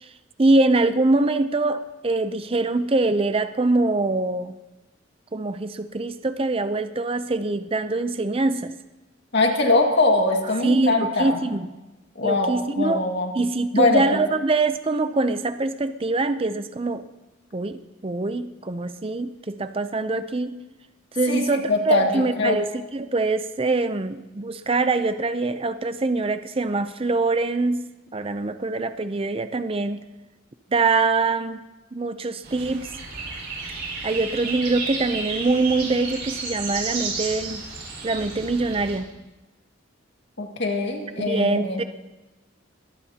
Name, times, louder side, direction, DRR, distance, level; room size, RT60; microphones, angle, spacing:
voice 1, 0.4-4.5 5.3-8.7 10.6-11.7 12.2-13.0 13.3-17.0 17.5-20.6 21.1-27.9 28.1-30.0 30.7-31.6 31.9-32.9 34.0-37.6 38.0-39.1 41.2-41.8, right 3 dB, 30° right, 10 dB, 0.5 m, -24 dB
voice 2, 9.3-11.4 12.2-13.3 13.7-14.2 21.3-22.6 40.4-41.8, left 2 dB, 60° left, 1 dB, 2.0 m, -22 dB
sound 1, 32.4-39.0, right 4 dB, 55° right, 5.8 m, -32 dB
22.0 x 18.0 x 2.9 m, 1.1 s
head